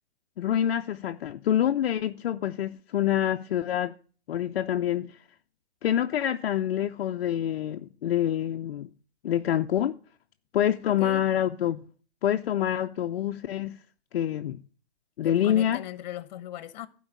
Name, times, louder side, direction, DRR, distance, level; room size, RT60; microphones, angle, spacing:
voice 1, 0.4-3.9 4.3-5.2 5.8-8.9 9.2-10.0 10.5-11.8 12.2-13.8 14.1-14.6 15.2-15.8, left 11 dB, 65° left, 0.7 m, -26 dB
voice 2, 10.8-11.2 15.2-16.9, left 12 dB, 45° left, 1.1 m, -38 dB
11.5 x 4.6 x 8.2 m
hypercardioid pair, 150°, 31 cm